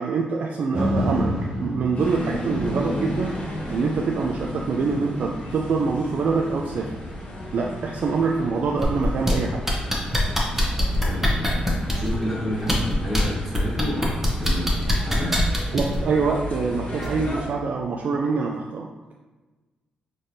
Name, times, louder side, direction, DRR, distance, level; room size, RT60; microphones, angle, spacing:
voice 1, 0.0-6.9 7.5-9.6 15.7-18.9, right 4 dB, 60° right, 0 dB, 0.3 m, -25 dB
sound 1, 0.7-8.9 9.4-9.5, equal, 90° right, 1.4 m, -32 dB
sound 2, 1.9-17.4, left 1 dB, 50° left, 1.3 m, -34 dB
sound 3, 8.8-9.3 9.7-12.1 12.6-13.2 13.5-16.0 17.0-17.1, left 1 dB, 10° right, 0.8 m, -23 dB
voice 2, 11.0-15.3, left 1 dB, 5° left, -7 dB, 1.4 m, -30 dB
4.2 x 3.1 x 2.6 m, 1.2 s
cardioid pair, 100°, 3 cm